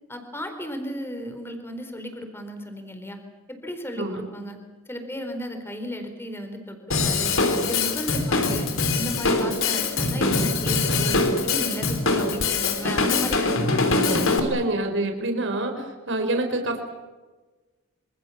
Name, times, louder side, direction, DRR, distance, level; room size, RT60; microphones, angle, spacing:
voice 1, 0.1-3.2 3.5-4.6 4.9-7.3 7.6-8.7 8.9-11.2 11.4-14.3, equal, 10° left, 6 dB, 4.3 m, -34 dB
Drum kit / Drum, 6.9-14.4, left 3 dB, 60° left, 4.2 m, -23 dB
voice 2, 13.7-16.9, right 2 dB, 55° right, 5 dB, 4.6 m, -27 dB
27.0 x 26.5 x 7.4 m, 1.2 s
head